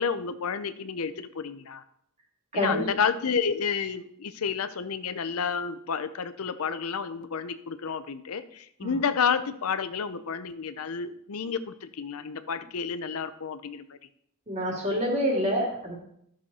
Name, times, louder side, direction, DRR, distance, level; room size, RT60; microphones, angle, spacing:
voice 1, 0.0-1.8 2.5-14.0, left 6 dB, 75° left, 12 dB, 0.6 m, -30 dB
voice 2, 14.5-16.0, equal, 30° right, -2 dB, 2.7 m, -27 dB
12.5 x 6.3 x 4.2 m, 0.72 s
head